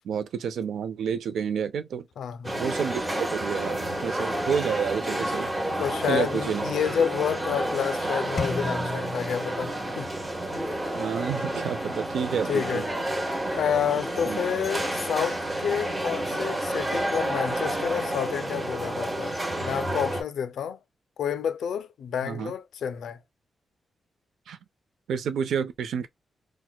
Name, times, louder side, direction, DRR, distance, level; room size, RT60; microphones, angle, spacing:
voice 1, 0.0-2.1 2.6-5.5 6.1-6.6 10.9-12.8 14.3-14.4 22.2-22.5 24.5-24.6 25.1-26.1, right 7 dB, 80° right, 0.4 m, -29 dB
voice 2, 2.2-2.6 5.8-10.1 12.5-12.8 13.5-20.8 21.2-23.2, left 8 dB, 85° left, 0.3 m, -29 dB
sound 1, 2.4-20.2, right 1 dB, 15° right, 0.8 m, -30 dB
sound 2, 8.4-10.3, left 3 dB, 25° left, 0.7 m, -34 dB
4.4 x 2.0 x 2.2 m
wide cardioid pair, 165°, 0 cm